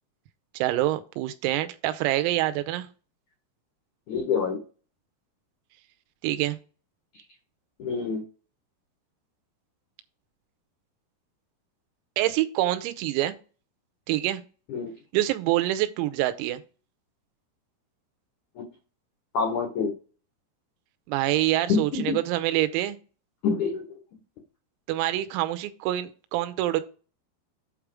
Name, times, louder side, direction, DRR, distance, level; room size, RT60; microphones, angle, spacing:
voice 1, 0.6-2.9 6.2-6.6 12.2-13.3 14.1-14.4 15.1-16.6 21.1-23.0 24.9-26.8, right 15 dB, 90° right, 3.5 m, -26 dB
voice 2, 4.1-4.6 7.8-8.2 14.7-14.9 18.6-18.7 19.3-19.9 21.7-22.2 23.4-24.0, left 5 dB, 75° left, 1.8 m, -26 dB
8.6 x 5.0 x 4.8 m
omnidirectional pair, 6.0 m